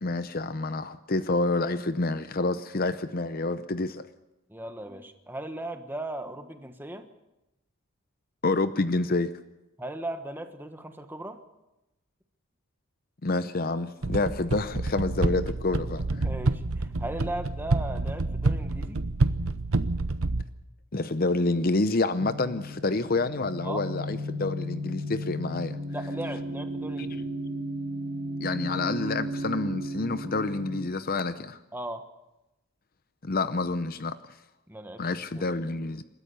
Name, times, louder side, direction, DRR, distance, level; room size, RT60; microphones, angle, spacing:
voice 1, 0.0-4.1 8.4-9.3 13.2-16.3 20.9-25.8 27.0-27.1 28.4-31.6 33.2-34.2 35.0-36.0, left 3 dB, 40° left, 12 dB, 0.7 m, -28 dB
voice 2, 4.5-7.1 9.8-11.4 16.2-19.0 23.6-23.9 25.9-27.3 31.7-32.0 34.7-35.1 35.3-35.4, right 1 dB, 10° right, 7 dB, 1.3 m, -37 dB
sound 1, 14.0-20.4, right 2 dB, 70° right, 0.9 m, -28 dB
sound 2, 22.2-30.8, equal, 45° right, 1.4 m, -34 dB
29.0 x 13.5 x 6.9 m, 0.97 s
head